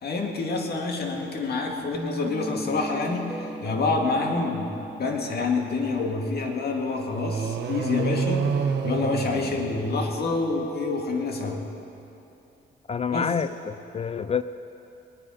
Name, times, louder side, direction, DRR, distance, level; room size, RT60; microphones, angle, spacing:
voice 1, 0.0-4.7 5.0-8.5 8.8-11.7 13.1-13.3, left 3 dB, 55° left, 2 dB, 2.0 m, -27 dB
Guitar, 1.9-7.0, equal, 10° right, 0.8 m, -37 dB
sound 1, 7.1-10.4, right 6 dB, 60° right, 1.2 m, -28 dB
voice 2, 12.9-14.4, left 6 dB, 30° left, 13 dB, 0.4 m, -28 dB
20.5 x 9.7 x 5.1 m, 2.9 s
cardioid pair, 90°, 20 cm